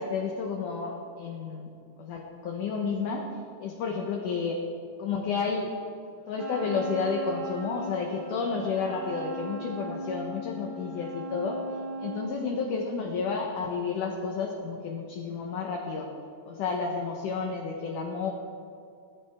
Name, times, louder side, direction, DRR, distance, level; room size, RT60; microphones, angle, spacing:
voice 1, 0.0-1.7 2.0-3.3 3.6-4.6 5.0-5.7 6.3-11.6 12.0-16.1 16.5-18.3, left 5 dB, 70° left, 0 dB, 2.1 m, -31 dB
Wind instrument woodwind instrument, 6.4-12.5, right 1 dB, 40° right, 3.4 m, -38 dB
19.0 x 14.5 x 3.6 m, 2.4 s
omnidirectional pair, 4.9 m